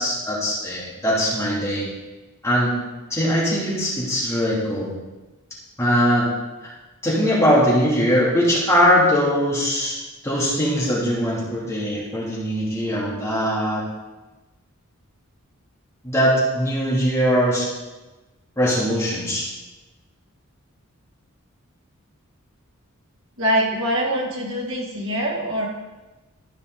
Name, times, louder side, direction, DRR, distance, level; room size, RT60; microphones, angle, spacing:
voice 1, 0.0-1.8 2.4-2.7 3.1-4.9 5.8-6.3 6.6-6.7 7.0-10.0 10.2-13.8 16.0-17.7 18.6-19.5, equal, 15° left, -7 dB, 2.7 m, -21 dB
voice 2, 23.4-25.7, equal, 70° right, -3 dB, 2.3 m, -23 dB
13.0 x 5.3 x 3.9 m, 1.1 s
head